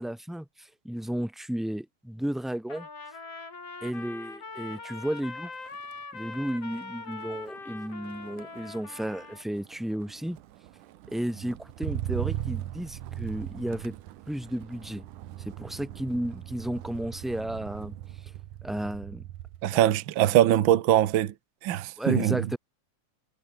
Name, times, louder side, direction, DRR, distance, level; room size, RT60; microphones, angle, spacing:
voice 1, 0.0-2.9 3.8-5.5 6.1-10.4 11.1-13.9 14.3-15.0 15.4-18.0 18.6-19.2 19.7-19.9 22.0-22.6, right 1 dB, ahead, 1.6 m, -33 dB
Trumpet, 2.7-9.4, left 4 dB, 50° left, 6.4 m, -42 dB
Motor vehicle (road), 4.6-4.9 5.2-19.7 20.1-20.5, right 14 dB, 85° right, 2.6 m, -40 dB
voice 2, 19.6-21.3 21.6-22.5, right 12 dB, 65° right, 1.2 m, -22 dB
omnidirectional pair, 3.5 m